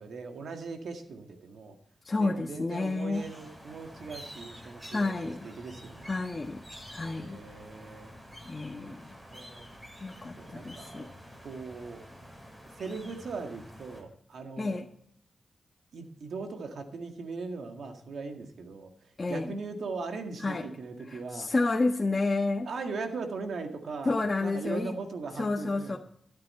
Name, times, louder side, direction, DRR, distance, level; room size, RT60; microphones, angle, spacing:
voice 1, 0.0-1.8 2.2-5.1 5.4-6.2 7.0-8.1 8.9-9.0 9.3-9.7 10.4-11.1 11.4-12.0 12.8-14.8 15.9-21.5 22.7-26.0, right 4 dB, 85° right, 5 dB, 1.9 m, -39 dB
voice 2, 2.0-3.3 4.9-5.5 6.0-6.6 6.9-7.4 8.4-9.1 10.0-11.1 14.6-14.9 19.2-19.6 20.4-20.7 21.1-22.7 24.0-25.0 25.4-26.0, left 3 dB, 40° left, 2 dB, 1.3 m, -30 dB
sound 1, 3.1-14.0, equal, 20° right, 6.9 m, -48 dB
13.0 x 11.5 x 4.3 m, 0.68 s
cardioid pair, 55°, 0 cm